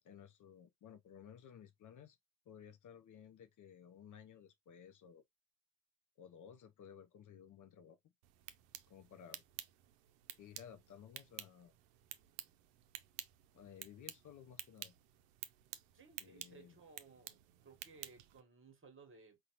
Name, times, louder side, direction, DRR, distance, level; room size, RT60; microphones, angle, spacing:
voice 1, 0.0-2.2 2.5-5.2 6.2-8.0 8.9-9.4 10.4-11.8 13.5-14.9 16.2-16.8, left 8 dB, 40° left, 0.6 m, -56 dB
sound 1, 8.2-18.4, right 13 dB, 80° right, 0.6 m, -52 dB
voice 2, 15.9-19.4, right 4 dB, 25° right, 1.2 m, -60 dB
3.8 x 2.3 x 2.8 m
hypercardioid pair, 65°, 46 cm